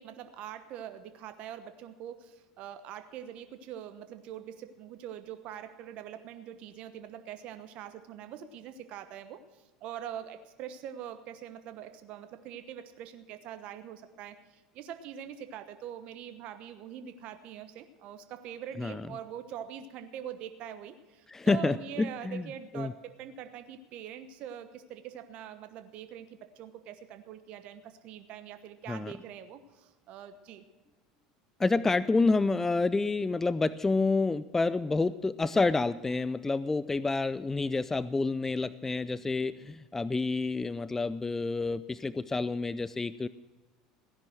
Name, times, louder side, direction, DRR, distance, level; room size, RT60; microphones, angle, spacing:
voice 1, 0.0-30.6, right 10 dB, 55° right, 9 dB, 1.1 m, -44 dB
voice 2, 21.3-22.5 22.7-22.9 28.9-29.1 31.6-43.3, left 3 dB, 15° left, 17 dB, 0.5 m, -28 dB
16.5 x 10.5 x 6.2 m, 1.2 s
hypercardioid pair, 80°, 2 cm